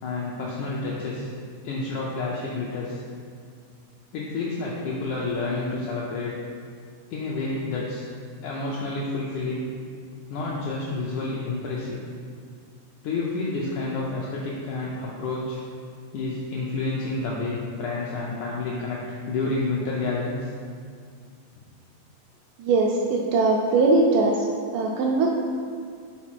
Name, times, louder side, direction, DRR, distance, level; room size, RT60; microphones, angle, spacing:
voice 1, 0.0-1.3 1.6-3.0 4.1-6.3 7.1-8.0 8.4-9.7 10.3-12.0 13.0-15.6 16.1-19.0 19.3-20.5, left 3 dB, 80° left, -5 dB, 1.7 m, -29 dB
voice 2, 22.6-24.4 24.7-25.3, right 3 dB, 85° right, -1 dB, 1.8 m, -20 dB
5.9 x 3.9 x 4.4 m, 2.1 s
omnidirectional pair, 4.1 m